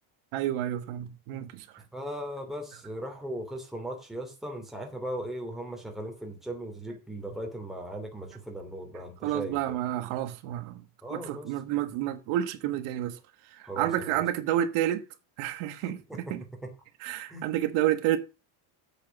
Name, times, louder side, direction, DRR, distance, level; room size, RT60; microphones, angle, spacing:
voice 1, 0.3-1.6 9.2-10.8 11.1-13.2 13.5-15.0 15.4-16.0 16.3-16.4 17.0-18.2, right 12 dB, 80° right, 1.5 m, -29 dB
voice 2, 1.9-9.6 11.0-11.5 13.6-14.2 15.8-16.3 16.6-16.7 17.3-17.4, right 1 dB, ahead, 2.9 m, -38 dB
8.1 x 6.7 x 7.2 m
cardioid pair, 165°, 48 cm